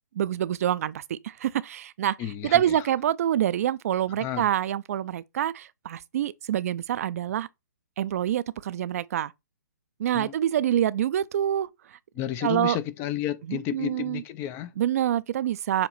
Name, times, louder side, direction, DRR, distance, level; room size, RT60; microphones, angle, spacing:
voice 1, 0.2-2.2 2.4-7.5 8.0-9.3 10.0-11.7 12.4-12.8 13.5-14.2 14.8-15.9, right 11 dB, 50° right, 0.5 m, -26 dB
voice 2, 2.2-2.9 4.2-4.5 10.1-10.3 12.1-14.7, left 12 dB, 25° left, 0.4 m, -32 dB
7.3 x 3.0 x 4.4 m
figure-of-eight pair, 130°, 10 cm